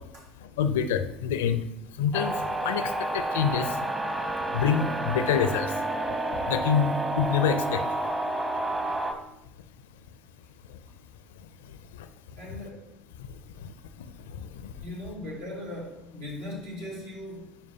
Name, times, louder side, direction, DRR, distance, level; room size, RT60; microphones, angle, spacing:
voice 1, 0.6-1.6 2.0-2.4 2.6-3.7 4.5-5.7 6.5-7.8, left 7 dB, 75° left, 10 dB, 0.5 m, -26 dB
sound 1, 2.1-9.1, right 1 dB, 15° right, 1.0 m, -30 dB
Bowed string instrument, 4.5-9.3, right 4 dB, 90° right, 1.6 m, -46 dB
voice 2, 12.4-12.9 14.8-17.6, left 1 dB, 75° right, -4 dB, 2.3 m, -39 dB
9.8 x 4.4 x 2.8 m, 0.87 s
hypercardioid pair, 65°, 0 cm